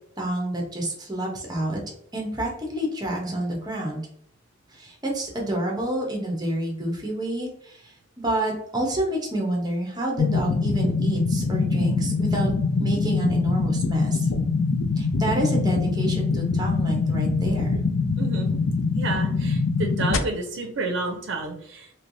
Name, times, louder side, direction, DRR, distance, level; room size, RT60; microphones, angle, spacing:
voice 1, 0.2-1.8 2.1-4.0 4.7-12.5 12.8-14.3 15.0-17.8, right 1 dB, 20° right, -1 dB, 0.8 m, -28 dB
sound 1, 10.2-20.2, left 4 dB, 75° left, 0.4 m, -24 dB
voice 2, 18.2-18.5 18.9-21.9, right 3 dB, 60° right, 3 dB, 0.5 m, -30 dB
3.2 x 3.0 x 2.6 m, 0.70 s
head